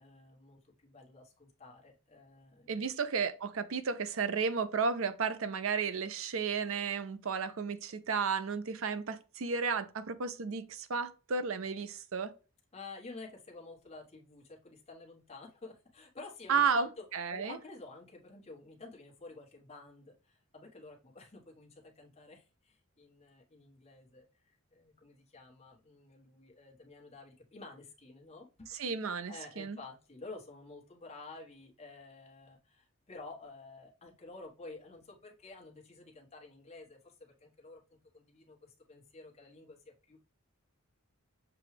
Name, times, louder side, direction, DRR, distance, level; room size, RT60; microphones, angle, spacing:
voice 1, 0.0-2.8 12.7-17.0 17.3-28.9 29.3-37.8 38.1-40.2, left 3 dB, 30° left, 1.2 m, -51 dB
voice 2, 2.7-12.3 16.5-16.9 17.1-17.6 28.8-29.8, right 5 dB, 65° right, 0.5 m, -33 dB
6.8 x 2.3 x 3.2 m
head